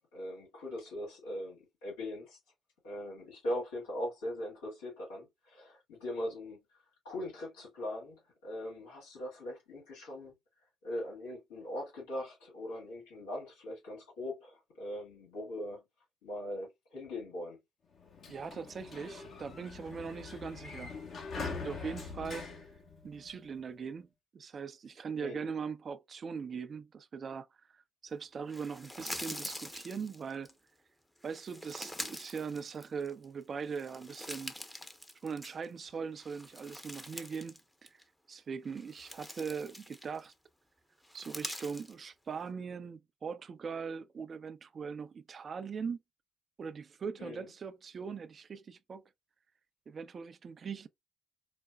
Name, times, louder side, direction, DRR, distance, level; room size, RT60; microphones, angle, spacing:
voice 1, 0.0-2.4 2.8-6.6 7.0-10.3 10.8-15.8 16.2-17.6 25.2-25.5 47.2-47.5, left 1 dB, 85° left, 2.0 m, -40 dB
Sliding door, 17.9-23.6, left 5 dB, 55° left, 1.2 m, -43 dB
voice 2, 18.3-20.9 21.4-22.5 23.0-24.1 24.3-27.5 27.7-30.5 31.2-34.5 35.2-37.9 38.3-40.3 41.1-46.0 46.6-49.1 49.9-50.9, right 6 dB, 45° right, 0.5 m, -40 dB
sound 1, 28.5-30.5 31.2-33.2 33.6-35.8 36.2-37.6 37.9-38.0 38.6-40.3 41.0-41.9, left 1 dB, 10° left, 0.8 m, -45 dB
4.9 x 2.2 x 2.3 m
hypercardioid pair, 50°, 0 cm